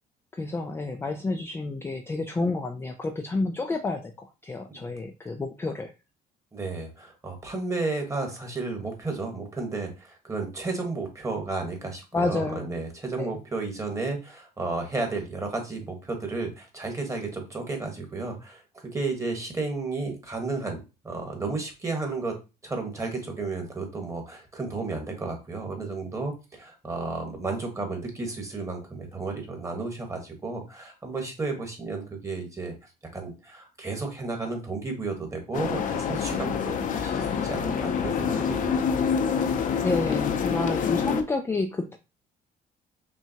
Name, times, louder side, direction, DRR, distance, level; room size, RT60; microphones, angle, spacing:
voice 1, 0.3-5.9 12.1-12.7 13.2-13.4 39.8-42.0, left 3 dB, 15° left, 5 dB, 0.3 m, -30 dB
voice 2, 6.5-20.8 21.0-22.3 22.6-32.7 33.1-38.9, right 3 dB, 20° right, 3 dB, 1.4 m, -33 dB
sound 1, 35.5-41.2, left 6 dB, 50° left, 0.6 m, -26 dB
5.6 x 2.3 x 2.8 m, 0.28 s
cardioid pair, 110°, 17 cm